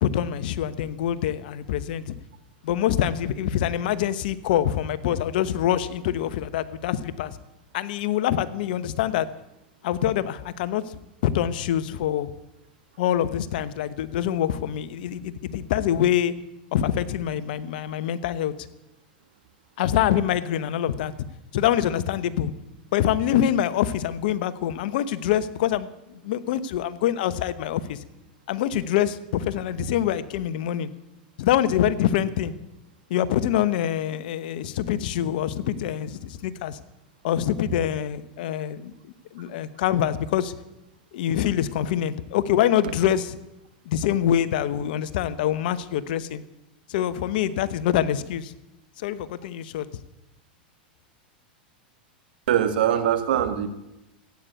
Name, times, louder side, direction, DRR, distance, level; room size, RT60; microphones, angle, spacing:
voice 1, 0.0-2.1 2.6-7.4 7.7-9.3 9.8-12.3 13.0-16.3 16.7-18.5 19.8-21.1 21.5-22.5 22.9-28.0 28.5-30.9 31.4-32.5 33.1-36.8 37.2-38.9 39.3-40.5 41.1-43.4 43.8-46.4 46.9-48.5 49.0-49.9, left 11 dB, 65° left, 14 dB, 1.0 m, -25 dB
voice 2, 52.5-53.7, right 10 dB, 75° right, 9 dB, 1.7 m, -22 dB
15.0 x 9.4 x 8.2 m, 0.91 s
hypercardioid pair, 105°, 5 cm